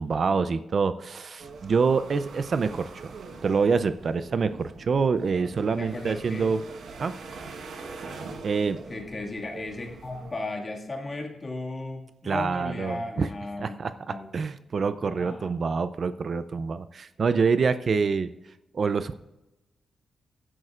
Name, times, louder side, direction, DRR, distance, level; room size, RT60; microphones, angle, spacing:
voice 1, 0.0-3.1 3.4-6.6 7.0-7.1 8.4-8.8 12.2-13.3 13.6-18.3 18.7-19.1, right 5 dB, 45° right, 12 dB, 0.4 m, -26 dB
sound 1, 1.4-10.4, right 4 dB, 70° right, 1.2 m, -43 dB
voice 2, 5.8-6.5 8.9-13.8 14.1-14.3 15.0-15.5, left 2 dB, 30° left, 0 dB, 1.9 m, -35 dB
16.0 x 11.0 x 2.4 m, 1.0 s
wide cardioid pair, 125°, 0 cm